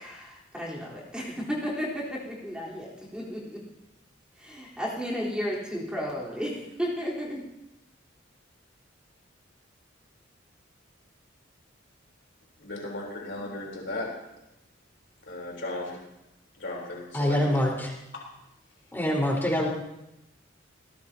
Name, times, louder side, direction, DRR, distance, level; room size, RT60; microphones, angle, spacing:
voice 1, 0.0-3.6 4.4-7.4, equal, 5° right, -6 dB, 4.0 m, -33 dB
voice 2, 12.6-14.1 15.2-16.0 16.6-17.6 18.1-18.2, left 2 dB, 65° left, -1 dB, 3.9 m, -36 dB
voice 3, 17.1-17.9 18.9-19.7, left 1 dB, 10° left, -2 dB, 4.5 m, -25 dB
22.5 x 19.0 x 2.9 m, 0.89 s
head